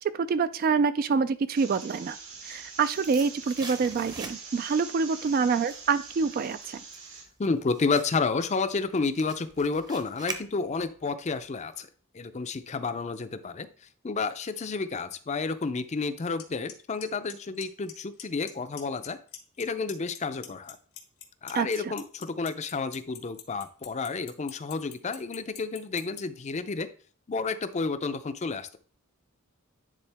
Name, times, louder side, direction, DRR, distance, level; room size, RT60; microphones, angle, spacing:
voice 1, 0.1-2.2 2.4-6.8 21.5-21.9, right 5 dB, 45° right, 13 dB, 0.3 m, -26 dB
sound 1, 1.5-7.2, right 4 dB, 80° right, 2.3 m, -44 dB
sound 2, 2.3-4.7 5.1-11.0 11.3-11.4, right 4 dB, 20° right, 0.7 m, -43 dB
voice 2, 7.4-11.9 12.1-13.7 14.0-19.2 19.6-20.8 21.4-26.9 27.3-28.8, left 4 dB, 35° left, 11 dB, 0.5 m, -30 dB
Clock, 16.4-16.5 16.7-17.0 17.3-17.9 18.2-18.5 18.8-19.6 19.9-26.2, left 12 dB, 85° left, 1.3 m, -42 dB
9.9 x 3.8 x 3.4 m, 0.42 s
head